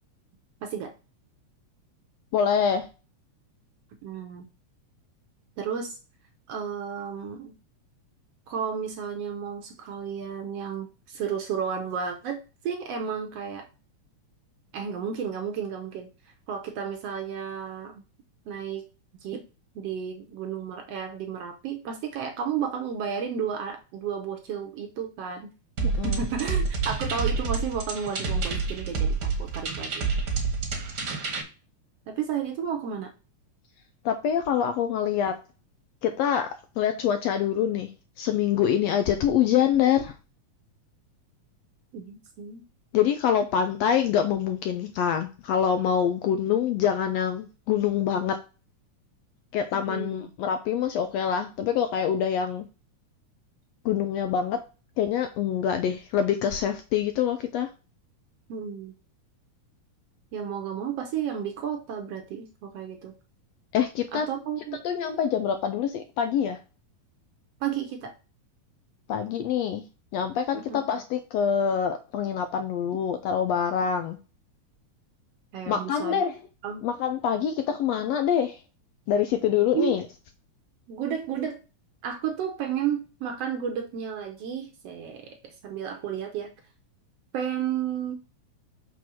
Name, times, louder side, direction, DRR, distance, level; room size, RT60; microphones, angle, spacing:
voice 1, 0.6-0.9 4.0-4.4 5.6-6.0 6.5-7.5 8.5-13.7 14.7-16.1 16.5-18.0 18.5-18.9 19.2-19.5 19.7-25.5 26.0-30.1 32.1-33.1 41.9-42.7 49.9-50.2 58.5-58.9 60.3-63.1 64.1-64.8 67.6-68.1 70.5-70.9 75.5-76.3 76.6-76.8 79.7-79.9 80.9-81.6 82.0-86.5 87.3-88.1, right 7 dB, 65° right, 4 dB, 1.7 m, -32 dB
voice 2, 2.3-2.9 25.8-26.3 34.0-35.4 36.0-36.5 36.8-37.9 38.2-40.2 42.9-48.4 49.5-52.7 53.8-54.6 55.0-57.7 63.7-64.3 64.8-66.6 69.1-69.8 70.1-74.2 75.7-76.4 76.8-78.6 79.1-80.0, left 8 dB, 80° left, 7 dB, 1.6 m, -25 dB
sound 1, 25.8-31.4, right 4 dB, 45° right, 1.4 m, -28 dB
6.0 x 3.8 x 6.2 m, 0.32 s
omnidirectional pair, 3.5 m